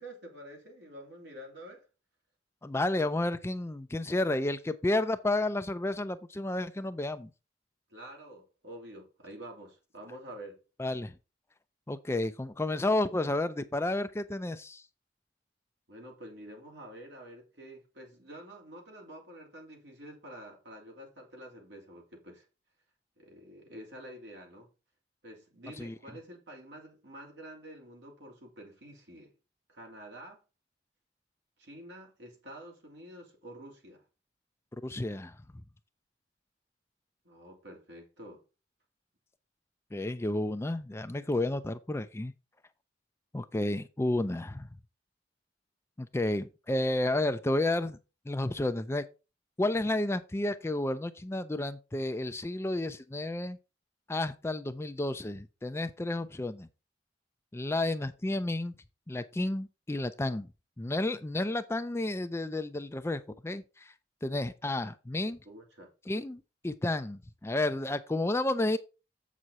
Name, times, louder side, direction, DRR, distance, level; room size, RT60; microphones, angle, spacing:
voice 1, 0.0-1.9 7.9-10.6 15.9-22.5 23.2-24.7 25.2-29.3 29.7-30.4 31.6-34.0 37.2-38.4 64.7-64.9 65.2-65.9, right 1 dB, 70° right, 2.9 m, -48 dB
voice 2, 2.6-7.3 10.8-11.1 11.9-14.8 25.8-25.9 34.8-35.4 39.9-42.3 43.3-44.7 46.0-48.0 48.3-49.0 49.6-53.6 54.1-56.7 57.5-58.7 59.1-60.5 60.8-63.9 64.2-65.4 66.1-68.8, left 2 dB, 15° left, 0.4 m, -31 dB
7.7 x 6.2 x 4.1 m
head